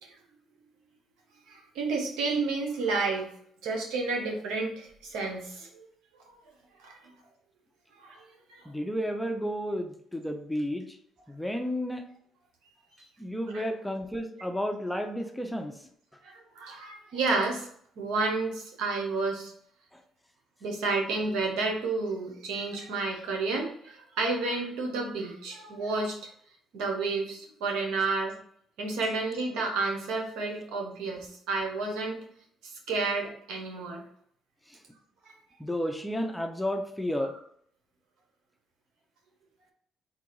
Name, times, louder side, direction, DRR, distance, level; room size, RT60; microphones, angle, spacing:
voice 1, 1.5-3.3 3.6-5.8 6.8-6.9 8.0-8.2 8.5-8.6 13.5-13.7 16.2-17.7 18.0-19.5 20.6-26.2 26.7-28.3 28.8-32.2 32.6-34.0 37.2-37.3, right 3 dB, 85° right, 1 dB, 1.0 m, -31 dB
voice 2, 8.7-10.8 11.3-12.0 13.2-15.7 35.6-37.3, equal, 5° left, 5 dB, 0.7 m, -32 dB
3.9 x 2.4 x 4.6 m, 0.64 s
supercardioid pair, 70°, 0 cm